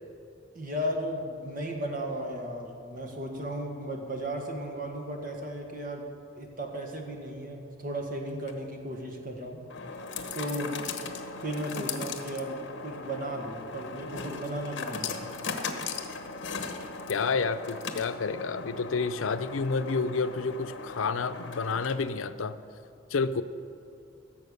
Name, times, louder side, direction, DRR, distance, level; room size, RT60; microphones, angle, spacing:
voice 1, 0.5-6.0 6.4-9.6 10.3-10.8 11.4-15.4, right 1 dB, 45° right, 2 dB, 1.7 m, -35 dB
sound 1, 8.3-22.3, left 4 dB, 60° left, 1.0 m, -38 dB
voice 2, 17.1-22.6 23.1-23.4, left 4 dB, 90° left, 12 dB, 0.6 m, -29 dB
15.5 x 7.2 x 6.9 m, 2.5 s
head